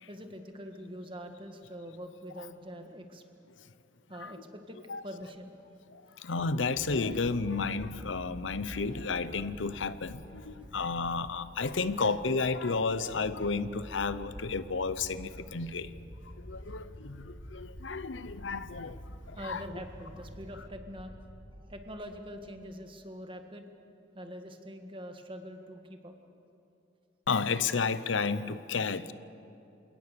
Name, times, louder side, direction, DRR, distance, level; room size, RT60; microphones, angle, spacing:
voice 1, 0.1-3.2 4.1-5.6 19.4-21.1 21.6-23.7 24.1-26.1, equal, 25° right, 5 dB, 1.7 m, -44 dB
voice 2, 5.9-15.9 16.4-19.0 19.3-19.6 27.3-29.1, left 4 dB, 90° left, 14 dB, 0.8 m, -32 dB
sound 1, 6.7-22.0, equal, 70° left, 2.4 m, -48 dB
28.5 x 18.0 x 6.9 m, 2.8 s
head